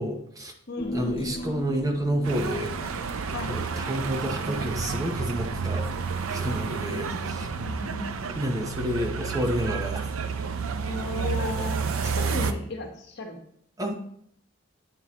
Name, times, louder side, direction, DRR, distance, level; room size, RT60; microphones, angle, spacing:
voice 1, 0.0-0.5 0.9-2.7 3.5-5.9 6.3-7.5 8.3-10.0 13.8-13.9, equal, 15° right, 3 dB, 0.7 m, -29 dB
voice 2, 0.7-1.2 3.3-3.6 6.9-8.2 10.8-13.4, left 2 dB, 55° left, 2 dB, 1.1 m, -35 dB
Human voice, 0.8-5.4 5.7-5.8, left 1 dB, 25° left, 0.4 m, -38 dB
sound 1, 2.2-12.5, right 5 dB, 85° right, 0.5 m, -30 dB
9.4 x 4.5 x 2.9 m, 0.68 s
head